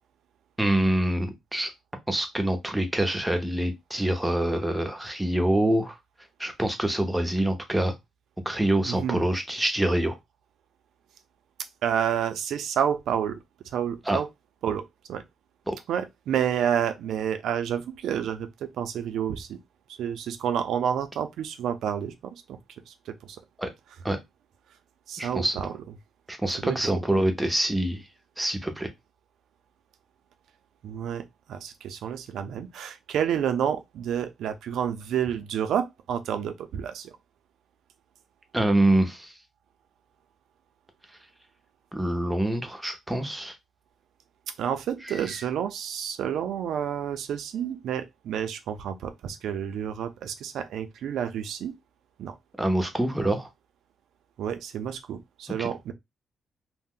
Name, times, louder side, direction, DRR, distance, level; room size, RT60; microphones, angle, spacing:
voice 1, 0.6-1.7 2.1-6.0 6.4-7.9 8.5-10.2 14.1-14.2 15.7-15.8 23.6-23.7 24.0-24.2 25.2-25.6 26.3-28.1 28.4-28.9 38.5-39.3 41.9-43.5 45.1-45.3 52.6-53.5 55.6-55.7, right 1 dB, 5° right, 0.6 m, -25 dB
voice 2, 8.9-9.2 11.8-13.4 13.7-14.3 14.6-15.2 15.9-19.6 20.0-22.6 22.9-23.4 25.1-25.8 26.6-27.0 30.8-37.1 44.6-51.7 52.2-52.3 54.4-55.9, right 9 dB, 85° right, 0.4 m, -29 dB
2.6 x 2.1 x 3.6 m
cardioid pair, 150°, 0 cm